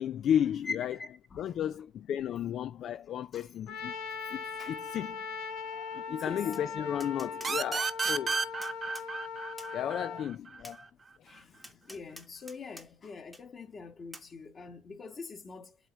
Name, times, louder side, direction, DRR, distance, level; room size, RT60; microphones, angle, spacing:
voice 1, 0.0-0.9 1.4-3.9 4.3-5.2 5.7-8.4 9.7-10.8 11.2-11.3, left 9 dB, 50° left, 0.3 m, -33 dB
voice 2, 0.6-1.6 3.3-3.5 4.5-4.8 6.1-6.5 11.2-15.8, left 4 dB, 35° left, 1.6 m, -44 dB
Trumpet, 3.7-10.2, left 5 dB, 80° left, 1.2 m, -40 dB
Tap, 6.5-6.6 7.0-9.1 9.6-9.7 10.6-10.8 11.6-12.9 13.3-13.4 14.1-14.3, equal, ahead, 1.1 m, -48 dB
sound 1, 7.4-10.8, right 4 dB, 25° right, 0.6 m, -32 dB
8.0 x 3.0 x 5.7 m
cardioid pair, 120°, 0 cm